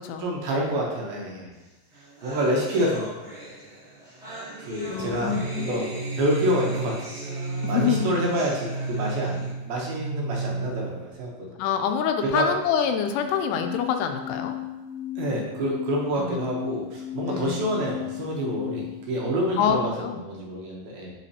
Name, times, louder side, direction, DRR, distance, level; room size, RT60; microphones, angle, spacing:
voice 1, 0.2-1.5 2.2-3.1 4.6-7.1 7.7-11.5 12.2-12.5 15.2-21.1, equal, 75° right, -2 dB, 2.5 m, -28 dB
sound 1, 1.6-1.7 1.9-9.5, right 1 dB, 30° right, 1.3 m, -40 dB
voice 2, 4.9-5.8 7.6-8.1 11.6-14.5 16.2-16.4 17.2-17.6 19.6-20.2, left 7 dB, 85° left, 6 dB, 2.6 m, -26 dB
sound 2, 5.1-11.1 13.1-19.1, left 1 dB, 55° left, 2.3 m, -33 dB
10.0 x 4.2 x 2.8 m, 1.1 s
omnidirectional pair, 4.8 m